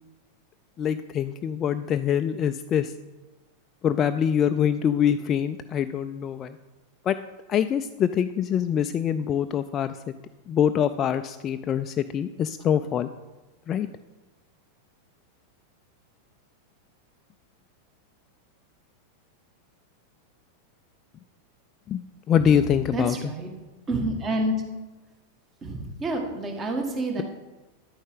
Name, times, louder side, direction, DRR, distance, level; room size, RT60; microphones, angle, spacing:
voice 1, 0.8-2.9 3.8-6.6 7.0-7.2 7.5-10.0 10.5-13.1 13.7-13.9 21.9-23.1, left 9 dB, 30° left, 9 dB, 0.3 m, -24 dB
voice 2, 22.9-23.5 23.9-24.5 25.6-27.2, right 1 dB, 25° right, 3 dB, 1.7 m, -28 dB
10.5 x 9.1 x 3.7 m, 1.2 s
figure-of-eight pair, 90°, 0 cm